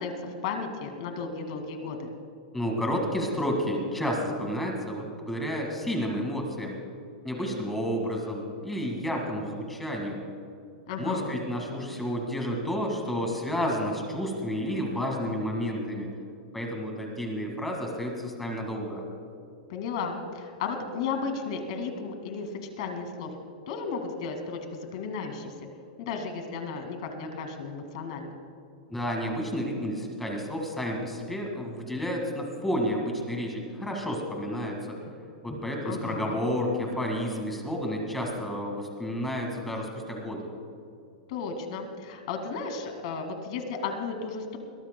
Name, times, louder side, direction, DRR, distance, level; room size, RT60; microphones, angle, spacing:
voice 1, 0.0-2.1 10.9-11.4 19.7-23.3 23.7-25.5 26.0-28.3 35.8-36.4 41.3-44.6, left 5 dB, 45° left, 5 dB, 2.1 m, -34 dB
voice 2, 2.5-6.8 7.2-10.2 11.0-16.1 16.5-19.0 28.9-35.0 35.4-40.5, equal, 5° left, 1 dB, 1.9 m, -31 dB
21.5 x 19.0 x 2.3 m, 2.5 s
supercardioid pair, 170°, 4 cm